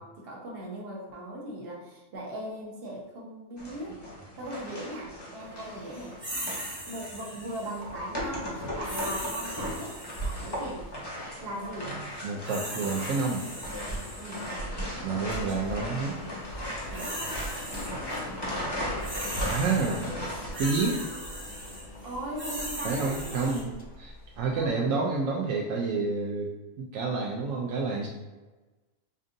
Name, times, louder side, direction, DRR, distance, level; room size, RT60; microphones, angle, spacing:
voice 1, 0.0-4.0 4.4-6.1 6.9-10.9 11.4-12.0 14.2-14.5 16.9-17.2 19.9-20.3 22.0-23.7 24.5-24.9, right 1 dB, 50° right, -3 dB, 1.1 m, -39 dB
sound 1, 3.6-20.5, equal, 20° left, 0.8 m, -36 dB
sound 2, 6.2-7.8 8.8-10.7 12.1-14.6 15.3-15.6 16.6-18.2 18.5-23.6, equal, 10° right, 0.9 m, -39 dB
voice 2, 12.2-13.4 15.0-16.2 19.5-20.1 20.6-21.0 22.8-23.7 24.0-26.5 26.8-28.1, right 4 dB, 75° right, -2 dB, 1.0 m, -29 dB
Engine, 14.7-24.7, left 1 dB, 65° left, 0.4 m, -45 dB
5.2 x 2.5 x 2.6 m, 1.2 s
omnidirectional pair, 1.4 m